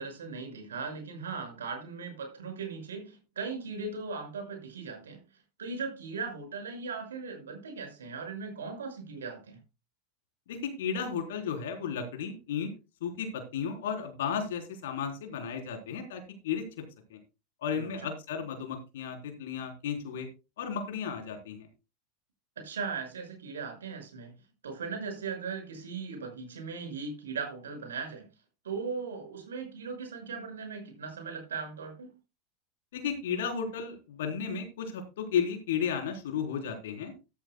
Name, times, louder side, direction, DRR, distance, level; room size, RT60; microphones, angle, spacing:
voice 1, 0.0-5.2 5.6-9.6 17.7-18.0 22.6-24.3 24.6-28.3 28.6-32.1, right 5 dB, 75° right, 6.0 m, -38 dB
voice 2, 10.5-12.7 13.0-16.6 17.1-17.2 17.6-20.3 20.6-21.7 32.9-37.1, left 7 dB, 70° left, 3.8 m, -34 dB
13.5 x 13.5 x 2.3 m
figure-of-eight pair, 85°, 0 cm